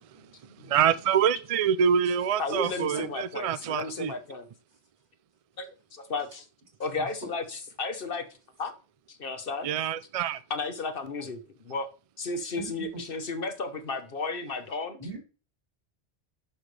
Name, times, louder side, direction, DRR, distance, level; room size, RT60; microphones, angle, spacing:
voice 1, 0.7-4.1 9.6-10.4, right 8 dB, 50° right, 0.4 m, -25 dB
voice 2, 2.4-4.5 5.6-6.5 6.8-8.2 8.6-8.7 9.1-9.7 10.5-11.9 12.2-15.0, left 3 dB, 55° left, 1.3 m, -33 dB
voice 3, 12.6-13.0 15.0-15.2, right 3 dB, 85° right, 3.5 m, -40 dB
12.0 x 5.7 x 3.3 m
omnidirectional pair, 1.1 m